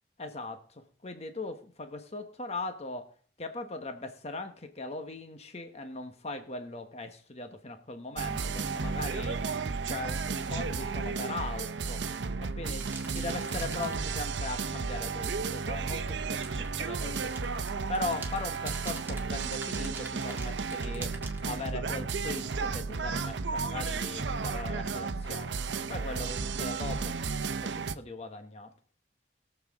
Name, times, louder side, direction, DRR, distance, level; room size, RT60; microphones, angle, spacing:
voice 1, 0.2-9.4 9.8-12.0 12.4-17.3 17.9-21.2 21.4-25.5 25.9-27.2 27.6-28.7, left 2 dB, 35° left, 7 dB, 1.1 m, -39 dB
sound 1, 8.2-27.9, right 4 dB, 85° right, 0.7 m, -33 dB
sound 2, 12.8-14.8 16.3-21.6, right 3 dB, 15° right, 1.8 m, -46 dB
21.5 x 7.2 x 3.6 m, 0.41 s
head